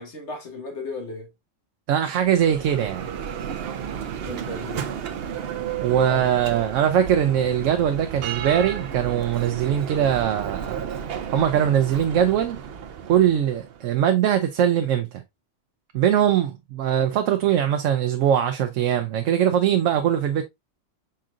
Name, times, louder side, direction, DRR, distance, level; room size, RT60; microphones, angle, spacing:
voice 1, 0.0-1.3 4.3-5.0 6.1-6.3 9.5-9.6, left 2 dB, 70° left, 1.7 m, -35 dB
voice 2, 1.9-3.1 5.8-10.8 11.3-12.6 13.1-15.2 15.9-20.4, right 9 dB, 90° right, 0.9 m, -21 dB
Bell, 2.1-13.9, right 8 dB, 60° right, 0.8 m, -33 dB
5.4 x 3.8 x 2.4 m
omnidirectional pair, 1.3 m